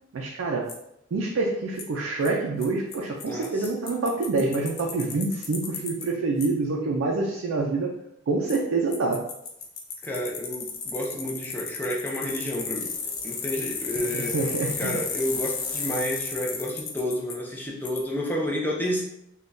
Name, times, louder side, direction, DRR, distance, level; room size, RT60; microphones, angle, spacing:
voice 1, 0.1-0.7 1.1-7.9 8.3-9.3 14.0-15.0, right 3 dB, 65° right, -1 dB, 0.4 m, -26 dB
Bicycle, 0.7-0.8 1.8-1.9 2.3-2.4 2.6-2.7 2.9-3.0 3.2-6.1 6.4-6.5 8.5-8.6 8.9-17.3 17.9-18.0, left 5 dB, 70° left, 0.5 m, -33 dB
voice 2, 3.2-3.7 10.0-12.9 13.2-14.4 14.8-19.0, equal, 10° left, -2 dB, 0.5 m, -30 dB
3.5 x 2.2 x 2.5 m, 0.80 s
head